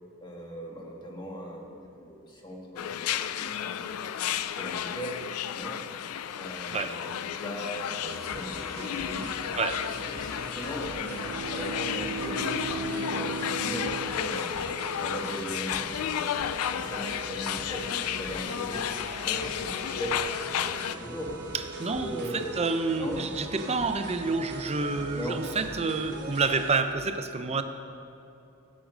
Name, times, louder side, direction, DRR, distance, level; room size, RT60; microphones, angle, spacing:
voice 1, 0.2-4.0 4.5-5.2 5.4-5.8 6.3-9.3 9.8-9.9 10.2-14.6 15.0-16.4 16.7-21.3 22.0-22.5 23.0-23.2 25.1-25.4, equal, 20° left, -1 dB, 1.5 m, -38 dB
sound 1, 2.8-21.0, left 10 dB, 80° left, 0.4 m, -33 dB
sound 2, 7.9-26.8, right 2 dB, 50° right, 1.2 m, -42 dB
Bowed string instrument, 10.8-15.1, right 5 dB, 80° right, 0.4 m, -37 dB
voice 2, 21.5-27.6, right 4 dB, 30° right, 8 dB, 0.6 m, -29 dB
15.5 x 6.3 x 5.1 m, 2.8 s
head